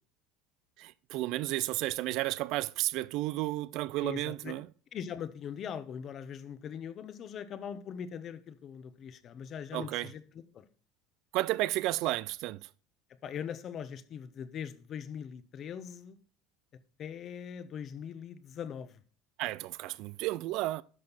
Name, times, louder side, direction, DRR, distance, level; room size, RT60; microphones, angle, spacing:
voice 1, 0.8-4.7 9.7-10.1 11.3-12.7 19.4-20.8, right 17 dB, 55° right, 0.3 m, -32 dB
voice 2, 4.0-4.5 4.9-10.6 13.2-16.2 17.0-19.0, left 8 dB, 35° left, 0.9 m, -41 dB
11.0 x 6.5 x 4.1 m
cardioid pair, 145°, 0 cm